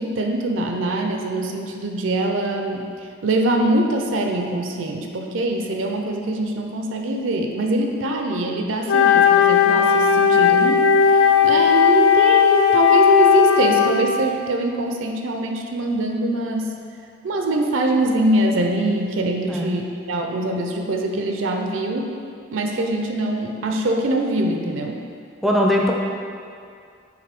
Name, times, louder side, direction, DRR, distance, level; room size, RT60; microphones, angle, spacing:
voice 1, 0.0-2.9 3.2-16.7 17.2-22.1 22.5-25.0, right 2 dB, 80° right, 3 dB, 0.6 m, -23 dB
Wind instrument woodwind instrument, 8.9-14.1, left 7 dB, 85° left, 0.4 m, -15 dB
voice 2, 25.4-25.9, equal, ahead, -1 dB, 0.4 m, -19 dB
7.6 x 2.7 x 5.2 m, 2.4 s
head